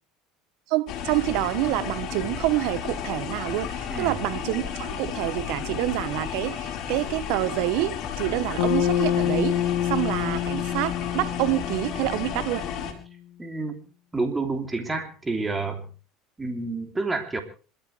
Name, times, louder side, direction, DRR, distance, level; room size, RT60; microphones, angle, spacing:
voice 1, 0.7-12.7, right 17 dB, 70° right, 1.2 m, -27 dB
sound 1, 0.9-12.9, left 8 dB, 50° left, 4.4 m, -33 dB
Bass guitar, 8.6-12.9, left 10 dB, 75° left, 2.7 m, -27 dB
voice 2, 13.4-13.9 14.1-15.9 16.4-17.4, right 3 dB, 15° right, 3.2 m, -29 dB
26.5 x 13.0 x 3.4 m
supercardioid pair, 100°, 0 cm